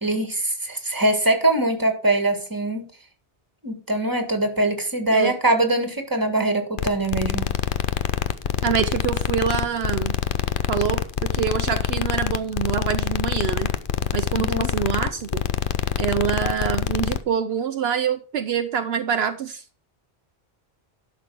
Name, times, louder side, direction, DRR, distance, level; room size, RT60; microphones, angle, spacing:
voice 1, 0.0-2.9 3.6-7.5 14.3-14.7, right 1 dB, 20° right, 6 dB, 1.8 m, -22 dB
sound 1, 6.8-17.2, left 9 dB, 55° left, 0.8 m, -25 dB
voice 2, 8.6-10.1 10.7-13.7 14.1-15.4 16.0-19.6, right 8 dB, 70° right, 9 dB, 0.9 m, -25 dB
11.5 x 6.2 x 4.8 m, 0.37 s
omnidirectional pair, 1.1 m